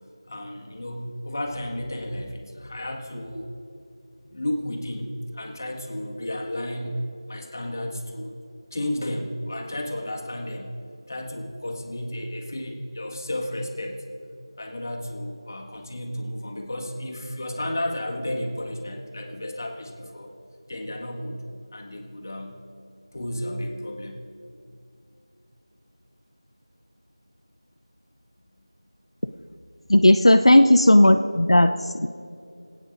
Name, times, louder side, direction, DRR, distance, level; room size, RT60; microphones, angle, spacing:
voice 1, 0.3-3.5 4.2-8.4 8.7-10.7 11.1-14.0 14.5-20.3 20.7-21.4 21.7-22.6 23.1-24.2, left 1 dB, 35° left, 1 dB, 1.7 m, -32 dB
voice 2, 29.9-31.7 32.0-32.1, left 1 dB, 80° left, 7 dB, 0.7 m, -15 dB
25.5 x 9.1 x 5.1 m, 2.6 s
figure-of-eight pair, 175°, 3 cm